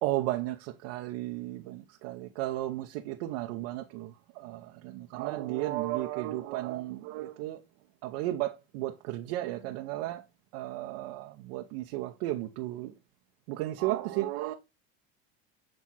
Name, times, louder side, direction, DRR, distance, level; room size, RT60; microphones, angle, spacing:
voice 1, 0.0-7.6 8.0-10.2 10.5-12.9 13.5-14.5, right 16 dB, 75° right, 0.8 m, -34 dB
7.6 x 3.5 x 4.1 m
supercardioid pair, 105°, 30 cm